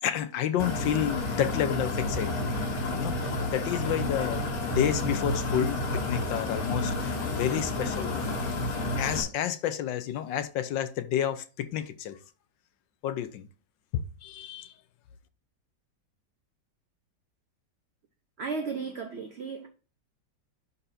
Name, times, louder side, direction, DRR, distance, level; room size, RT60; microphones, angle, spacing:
voice 1, 0.0-2.5 3.0-8.7 9.0-12.2 13.0-13.5 13.9-14.7, left 10 dB, 85° left, 1.4 m, -30 dB
sound 1, 0.6-9.2, left 2 dB, 55° left, 1.7 m, -30 dB
voice 2, 18.4-19.7, right 4 dB, 50° right, 0.8 m, -34 dB
11.5 x 4.1 x 2.7 m
omnidirectional pair, 2.0 m